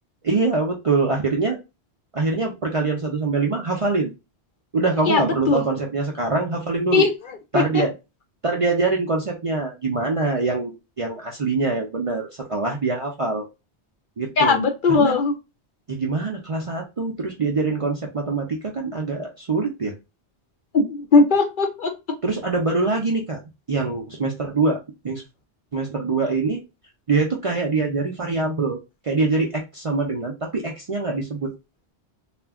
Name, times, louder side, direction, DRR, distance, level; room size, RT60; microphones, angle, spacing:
voice 1, 0.2-1.6 2.1-4.1 4.7-7.1 7.5-7.9 8.4-13.5 14.2-14.6 14.9-15.2 15.9-19.9 22.2-23.4 23.7-25.2 25.7-26.6 27.1-28.8 29.0-31.5, right 3 dB, 45° right, 0 dB, 0.4 m, -24 dB
voice 2, 5.1-5.6 6.9-7.1 7.5-7.6 14.4-15.3 20.7-21.9, left 4 dB, 60° left, 5 dB, 0.6 m, -18 dB
2.4 x 2.1 x 3.4 m, 0.25 s
omnidirectional pair, 1.1 m